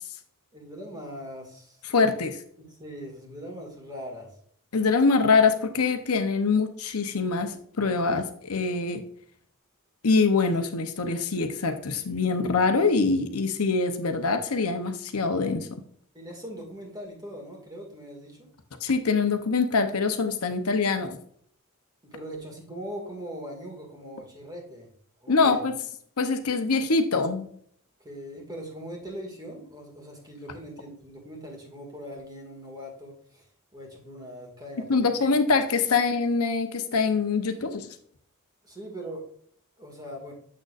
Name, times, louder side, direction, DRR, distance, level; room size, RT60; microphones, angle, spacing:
voice 1, 0.5-2.2 2.6-4.4 16.1-18.5 22.0-24.9 25.2-25.6 28.0-33.5 33.7-35.3 38.6-39.3 39.8-40.3, equal, 20° right, 0 dB, 2.0 m, -41 dB
voice 2, 1.9-2.4 4.7-9.0 10.0-15.8 18.8-21.2 25.3-25.7 26.2-27.5 34.9-37.9, left 4 dB, 80° left, 7 dB, 0.8 m, -24 dB
7.6 x 6.5 x 2.5 m, 0.62 s
head